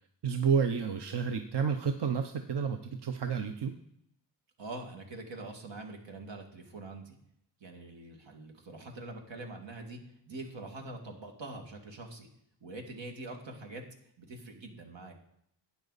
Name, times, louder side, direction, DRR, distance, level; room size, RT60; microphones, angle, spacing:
voice 1, 0.2-3.7, right 6 dB, 70° right, 6 dB, 0.8 m, -30 dB
voice 2, 4.6-7.2 7.6-10.0 10.3-12.3 12.6-13.8 14.2-15.1, right 2 dB, 90° right, 2 dB, 2.1 m, -44 dB
12.0 x 9.2 x 4.1 m, 0.73 s
wide cardioid pair, 80°, 43 cm